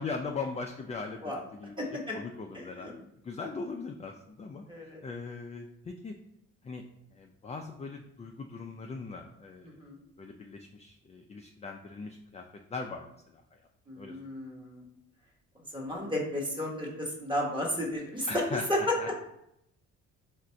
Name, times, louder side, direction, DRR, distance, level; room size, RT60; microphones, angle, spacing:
voice 1, 0.0-1.7 2.1-6.1 6.6-6.8 7.1-9.7 10.2-12.4 12.7-13.4 14.0-14.2 18.3-19.1, left 4 dB, 20° left, 3 dB, 0.3 m, -40 dB
voice 2, 1.8-2.2 2.5-2.9 4.7-5.0 9.6-10.0 13.9-14.8 15.7-18.4 18.7-18.9, left 1 dB, 15° right, -2 dB, 1.2 m, -33 dB
3.6 x 2.5 x 4.4 m, 0.77 s
cardioid pair, 90°, 30 cm